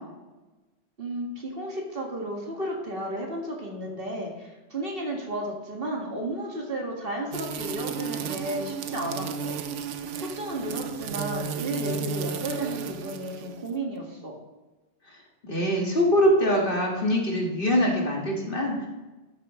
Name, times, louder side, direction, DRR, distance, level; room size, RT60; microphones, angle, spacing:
voice 1, 1.0-9.6 10.2-14.3, right 1 dB, 50° right, -1 dB, 2.1 m, -33 dB
sound 1, 7.3-13.7, right 6 dB, 80° right, 1.0 m, -33 dB
voice 2, 15.4-18.9, equal, 50° left, -2 dB, 2.0 m, -23 dB
12.0 x 8.9 x 3.1 m, 1.1 s
omnidirectional pair, 1.2 m